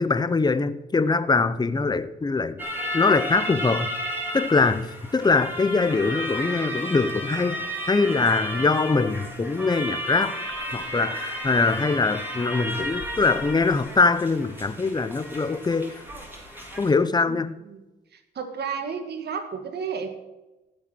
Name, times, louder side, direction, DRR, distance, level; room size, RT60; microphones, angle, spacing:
voice 1, 0.0-2.6 2.9-3.9 4.3-4.9 5.1-7.6 7.9-10.4 10.7-16.0 16.8-17.5, left 4 dB, 20° left, 13 dB, 0.8 m, -23 dB
sound 1, 2.6-16.9, equal, 10° right, 3.7 m, -33 dB
voice 2, 17.3-17.8 18.1-20.1, right 6 dB, 55° right, 6 dB, 1.9 m, -33 dB
16.0 x 6.5 x 6.2 m, 1.0 s
cardioid pair, 90°, 20 cm